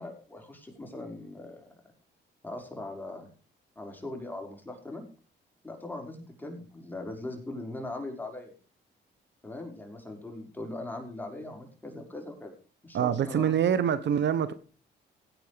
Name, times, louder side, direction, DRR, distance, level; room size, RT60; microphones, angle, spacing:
voice 1, 0.0-1.6 2.4-3.3 3.8-5.0 5.6-8.5 9.4-12.6 12.8-13.5, left 2 dB, 10° left, 5.6 m, -40 dB
voice 2, 12.9-14.5, right 8 dB, 65° right, 1.2 m, -25 dB
16.5 x 9.4 x 5.2 m
cardioid pair, 90°, 20 cm